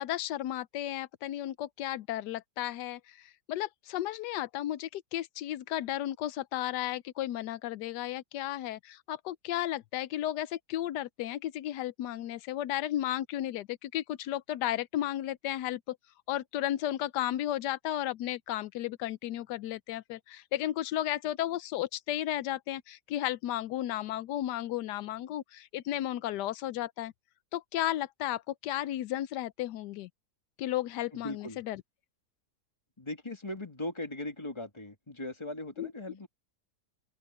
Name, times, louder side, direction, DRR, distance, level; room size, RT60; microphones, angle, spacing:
voice 1, 0.0-16.0 16.3-27.1 27.5-30.1 30.6-31.8 35.8-35.9, left 13 dB, 90° left, 1.2 m, -34 dB
voice 2, 31.1-31.6 33.0-36.3, left 1 dB, 15° left, 2.3 m, -39 dB
open air
omnidirectional pair, 1.7 m